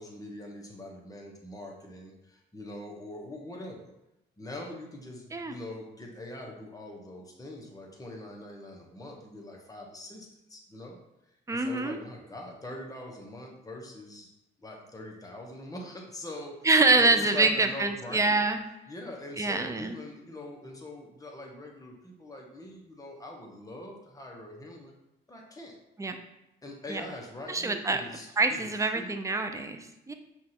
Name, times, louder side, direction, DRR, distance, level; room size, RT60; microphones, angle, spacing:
voice 1, 0.0-3.9 4.4-11.0 11.5-14.3 14.6-16.7 17.0-18.5 18.9-24.9 25.3-25.7 26.6-29.1, left 1 dB, 15° left, 0 dB, 1.0 m, -43 dB
voice 2, 11.5-12.0 16.6-18.6 19.4-20.0 26.0-26.2 26.9-27.0 27.5-28.0 28.4-30.1, right 3 dB, 15° right, 7 dB, 0.4 m, -25 dB
5.9 x 2.5 x 2.9 m, 0.91 s
cardioid pair, 90°, 20 cm